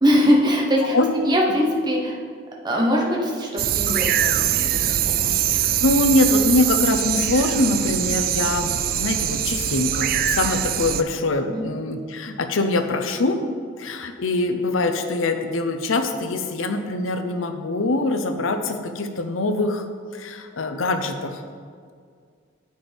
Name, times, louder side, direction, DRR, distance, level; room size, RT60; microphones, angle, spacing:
voice 1, 0.0-2.2 2.6-4.7 5.0-5.5 11.5-11.7, equal, 20° right, -1 dB, 1.1 m, -22 dB
sound 1, 3.6-11.0, right 11 dB, 45° right, 0.3 m, -23 dB
voice 2, 5.5-13.4 13.8-21.4, left 2 dB, 85° left, 7 dB, 0.7 m, -23 dB
9.5 x 7.9 x 3.4 m, 2.1 s
head